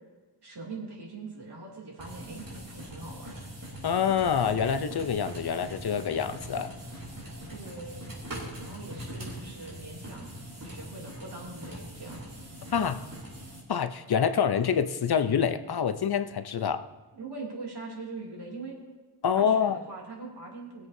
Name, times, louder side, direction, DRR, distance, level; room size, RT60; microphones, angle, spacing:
voice 1, 0.4-3.5 7.5-8.1 8.6-10.3 10.6-12.3 17.2-18.7 19.3-20.9, right 3 dB, 80° right, -3 dB, 2.8 m, -42 dB
sound 1, 2.0-13.6, equal, 55° right, 3.4 m, -42 dB
voice 2, 3.8-6.7 12.7-13.0 13.7-16.9 19.2-19.8, left 7 dB, 70° left, 10 dB, 0.7 m, -26 dB
20.0 x 7.8 x 2.7 m, 1.2 s
wide cardioid pair, 90°, 39 cm